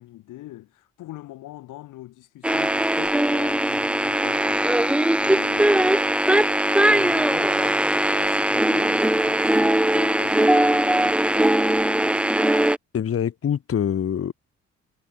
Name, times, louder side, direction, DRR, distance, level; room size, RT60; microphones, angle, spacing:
voice 1, 0.0-4.7 5.1-5.9 6.8-7.9 8.1-11.2, left 16 dB, 90° left, 5.4 m, -42 dB
sound 1, 2.4-12.8, right 1 dB, 5° right, 0.6 m, -20 dB
voice 2, 12.9-14.3, left 8 dB, 50° left, 1.6 m, -24 dB
cardioid pair, 90°, 30 cm